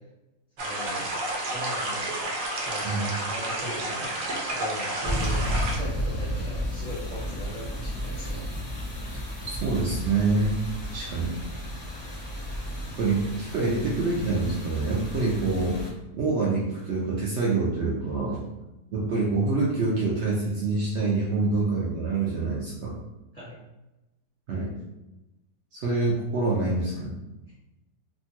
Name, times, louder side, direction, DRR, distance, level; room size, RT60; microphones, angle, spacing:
voice 1, 0.6-1.1 1.5-2.2 2.6-8.4 18.2-18.3 23.3-23.6, left 1 dB, 30° right, -10 dB, 0.8 m, -39 dB
sound 1, 0.6-5.8, right 1 dB, 65° right, 0.9 m, -30 dB
sound 2, 5.0-15.9, equal, 40° left, 0.3 m, -33 dB
voice 2, 9.5-10.5 10.8-11.4 13.0-15.8 16.1-18.4 18.9-22.9 24.5-24.7 25.7-27.1, right 3 dB, 90° right, -4 dB, 0.6 m, -26 dB
2.9 x 2.3 x 2.8 m, 0.99 s
omnidirectional pair, 1.8 m